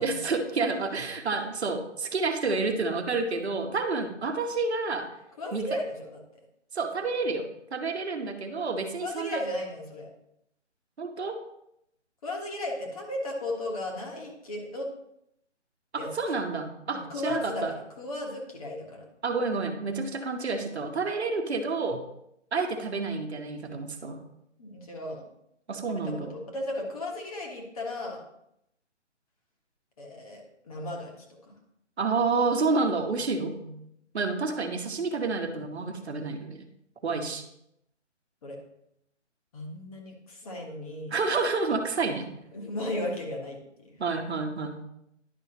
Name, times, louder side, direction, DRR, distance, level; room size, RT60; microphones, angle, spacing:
voice 1, 0.0-5.1 5.5-5.6 6.7-9.4 11.0-11.4 15.9-17.7 19.2-22.1 22.5-24.2 25.7-26.4 32.0-33.6 34.1-36.6 37.0-37.4 41.1-42.3 44.0-44.8, right 4 dB, 60° right, 5 dB, 1.1 m, -29 dB
voice 2, 5.4-6.4 7.0-7.1 9.0-10.1 12.2-14.9 16.0-16.4 16.9-19.0 24.6-25.2 25.9-28.2 30.0-31.5 33.6-33.8 38.4-38.6 39.5-41.2 42.5-44.0, left 1 dB, 30° left, 0 dB, 1.3 m, -35 dB
10.5 x 5.6 x 2.9 m, 0.78 s
figure-of-eight pair, 160°, 36 cm